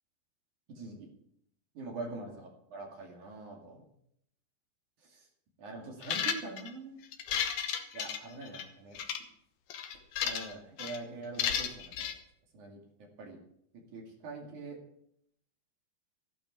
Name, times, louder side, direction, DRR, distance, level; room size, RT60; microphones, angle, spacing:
voice 1, 0.7-1.1 1.8-3.8 5.0-5.2 5.6-7.0 7.9-9.0 10.2-12.1 12.5-12.8 13.2-13.4 13.9-14.8, right 3 dB, 55° right, 0 dB, 3.7 m, -44 dB
sound 1, 6.0-6.7 7.1-8.6 9.0-9.2 9.7-10.5 10.8-11.0 11.4-12.1, left 8 dB, 70° left, 2.5 m, -33 dB
15.0 x 12.0 x 4.9 m, 0.72 s
omnidirectional pair, 4.3 m